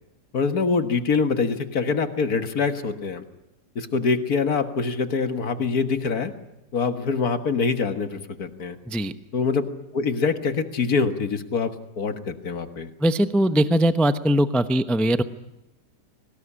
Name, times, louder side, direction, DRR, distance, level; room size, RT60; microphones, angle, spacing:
voice 1, 0.3-3.2 3.8-6.3 6.7-8.8 9.3-9.7 9.9-12.9, left 5 dB, 60° left, 9 dB, 1.9 m, -24 dB
voice 2, 13.0-15.2, right 1 dB, ahead, 11 dB, 0.4 m, -20 dB
23.5 x 19.0 x 10.0 m, 0.95 s
omnidirectional pair, 1.9 m